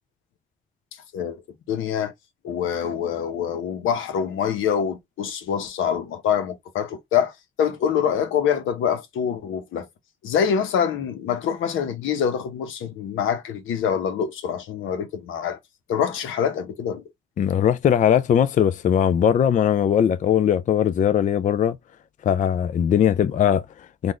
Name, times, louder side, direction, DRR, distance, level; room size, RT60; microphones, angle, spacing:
voice 1, 1.7-2.1 2.4-7.3 7.6-9.9 10.2-15.6 15.9-17.0, left 8 dB, 80° left, 1.0 m, -25 dB
voice 2, 17.4-21.8 22.2-24.1, left 9 dB, 40° left, 0.4 m, -20 dB
3.8 x 2.5 x 3.1 m
cardioid pair, 90°, 20 cm